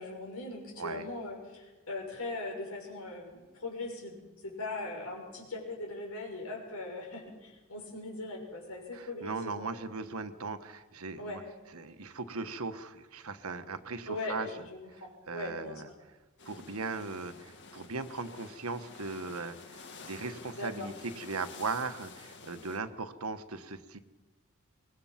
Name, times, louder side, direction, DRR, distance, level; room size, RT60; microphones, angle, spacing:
voice 1, 0.0-9.7 11.2-11.4 14.1-15.8 20.5-20.9, left 2 dB, 80° left, 0 dB, 6.5 m, -40 dB
voice 2, 8.9-11.4 11.7-14.5 15.3-15.9 16.4-24.0, right 4 dB, 80° right, 9 dB, 1.3 m, -38 dB
sound 1, 16.4-22.8, left 4 dB, 55° left, 1.9 m, -50 dB
24.5 x 20.5 x 5.9 m, 1.2 s
head